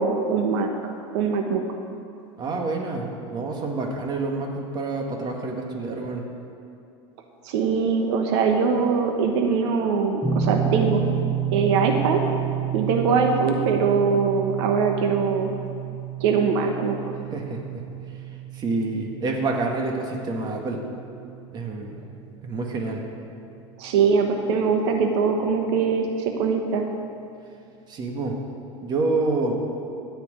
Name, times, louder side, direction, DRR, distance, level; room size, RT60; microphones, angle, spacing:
voice 1, 0.0-1.6 7.4-11.0 11.5-12.2 12.7-15.5 16.2-17.1 23.8-26.9, right 5 dB, 70° right, 4 dB, 1.2 m, -22 dB
voice 2, 2.4-6.2 17.3-17.6 18.5-20.8 21.5-22.0 22.4-23.0 27.9-28.4 28.8-29.5, right 3 dB, 30° right, 1 dB, 1.7 m, -27 dB
sound 1, 10.2-23.1, right 8 dB, 5° right, 1.1 m, -31 dB
14.5 x 6.1 x 8.8 m, 2.6 s
supercardioid pair, 140°, 15 cm